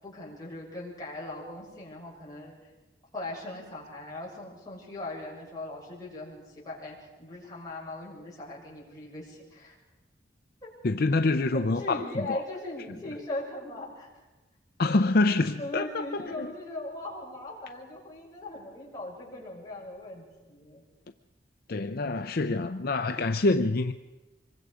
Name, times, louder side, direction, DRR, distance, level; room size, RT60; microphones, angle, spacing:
voice 1, 0.0-2.6 3.1-9.7 10.6-10.7 11.5-14.1 15.6-20.8, left 2 dB, 20° left, 6.9 m, -39 dB
voice 2, 10.8-12.0 12.3-12.4 14.8-16.5 21.7-23.9, left 2 dB, 55° left, 0.6 m, -26 dB
26.0 x 22.5 x 5.0 m
head